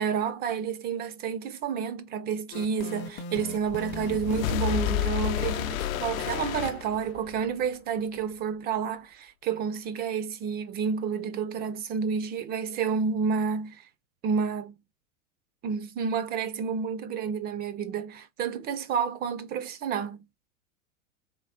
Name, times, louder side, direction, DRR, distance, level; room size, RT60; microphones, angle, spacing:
voice 1, 0.0-13.8 14.2-14.7 15.6-20.2, right 6 dB, 25° right, 0.4 m, -30 dB
sound 1, 2.5-7.1, left 6 dB, 25° left, 0.5 m, -39 dB
sound 2, 3.7-7.5, left 11 dB, 70° left, 0.7 m, -30 dB
3.5 x 3.2 x 2.7 m
hypercardioid pair, 110°, 42 cm